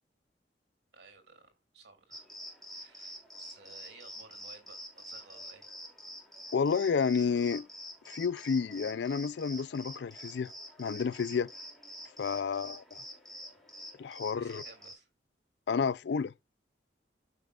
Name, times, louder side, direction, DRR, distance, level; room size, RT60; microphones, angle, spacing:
voice 1, 0.9-2.3 2.7-5.7 12.4-12.6 14.4-15.1, right 4 dB, 65° right, 2.8 m, -56 dB
sound 1, 2.1-14.9, equal, ahead, 2.8 m, -47 dB
voice 2, 6.5-7.7 8.1-10.5 10.8-11.5 12.2-12.8 14.0-14.6 15.7-16.3, left 6 dB, 70° left, 0.4 m, -30 dB
12.5 x 5.7 x 2.4 m
head